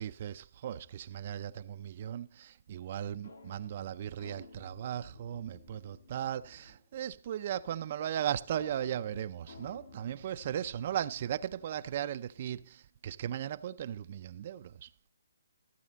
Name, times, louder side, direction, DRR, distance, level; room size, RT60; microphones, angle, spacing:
voice 1, 0.0-14.9, right 10 dB, 40° right, 0.5 m, -37 dB
sound 1, 3.2-7.0 8.5-12.1, left 3 dB, 75° left, 5.6 m, -55 dB
15.5 x 8.4 x 4.1 m
hypercardioid pair, 160°, 0 cm